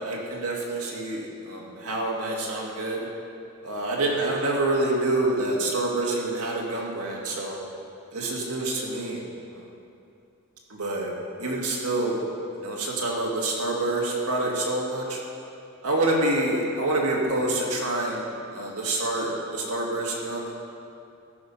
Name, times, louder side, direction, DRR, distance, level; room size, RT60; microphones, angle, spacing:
voice 1, 0.0-3.1 3.6-7.6 8.1-9.2 9.5-9.7 10.7-11.1 11.4-12.2 12.5-15.2 15.8-20.5, right 2 dB, 80° right, -2 dB, 1.8 m, -27 dB
13.0 x 5.4 x 5.5 m, 2.5 s
head